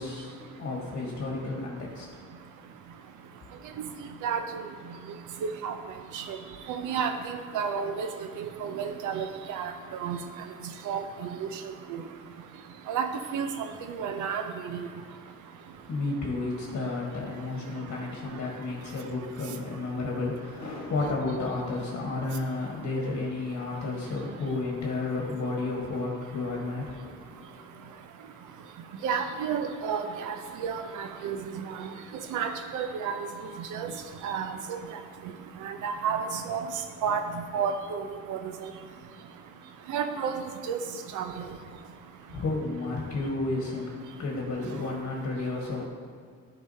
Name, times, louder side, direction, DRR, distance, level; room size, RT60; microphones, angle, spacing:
voice 1, 0.0-2.1 15.9-27.7 42.3-45.9, left 3 dB, 55° left, -2 dB, 1.5 m, -32 dB
voice 2, 5.4-5.7 6.1-6.4 6.7-8.1 8.4-9.7 10.0-10.2 10.9-11.4 11.9-12.0 12.9-13.1 13.3-13.7 14.0-14.9 29.0-30.3 30.6-31.9 32.3-33.2 33.7-33.9 34.2-34.8 35.6-36.7 37.0-37.2 37.5-38.4 39.9-40.8 41.1-41.3, right 7 dB, 85° right, 7 dB, 0.7 m, -31 dB
10.5 x 4.9 x 2.8 m, 2.1 s
cardioid pair, 90°, 30 cm